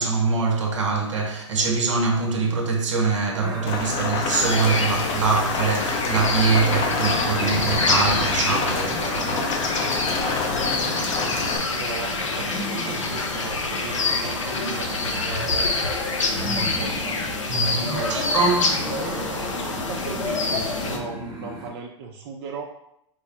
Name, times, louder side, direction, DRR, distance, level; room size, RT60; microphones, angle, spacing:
voice 1, 0.0-9.8 17.5-18.8, right 4 dB, 80° right, 0.8 m, -24 dB
sound 1, 3.4-21.7, equal, 30° right, 1.1 m, -37 dB
Rain, 3.7-11.6, left 4 dB, 35° left, 0.6 m, -28 dB
sound 2, 4.3-21.0, left 3 dB, 90° left, 0.6 m, -26 dB
voice 2, 11.7-15.7 16.5-17.2 17.9-18.3 19.9-22.7, right 5 dB, 50° right, 0.5 m, -37 dB
4.5 x 2.1 x 2.9 m
hypercardioid pair, 110°, 15 cm